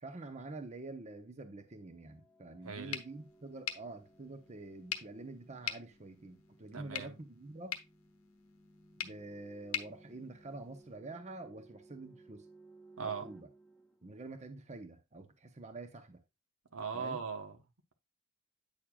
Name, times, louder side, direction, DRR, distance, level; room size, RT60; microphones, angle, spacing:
voice 1, 0.0-7.8 9.0-12.4 13.0-13.5 14.0-16.2 16.9-17.2, right 2 dB, 35° right, 0.8 m, -47 dB
sound 1, 1.9-14.6, right 2 dB, 5° left, 0.7 m, -61 dB
voice 2, 2.6-3.0 6.7-7.2 13.0-13.3 16.7-17.6, right 5 dB, 80° right, 1.1 m, -39 dB
sound 2, 2.9-11.0, left 9 dB, 85° left, 0.9 m, -45 dB
8.8 x 6.5 x 2.4 m
head